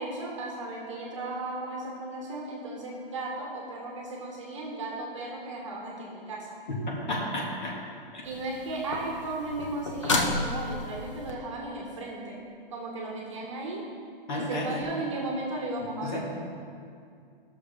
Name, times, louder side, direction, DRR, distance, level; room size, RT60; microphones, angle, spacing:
voice 1, 0.0-6.6 8.2-12.4 12.7-13.8 14.3-16.2, right 2 dB, 30° right, -1 dB, 1.3 m, -35 dB
voice 2, 7.1-7.7 8.1-8.2 14.3-14.7 16.0-16.2, left 1 dB, 50° left, -3 dB, 2.2 m, -31 dB
sound 1, 8.2-11.3 14.8-14.9, left 2 dB, 30° left, 0.7 m, -32 dB
16.5 x 6.4 x 3.6 m, 2.3 s
hypercardioid pair, 180°, 29 cm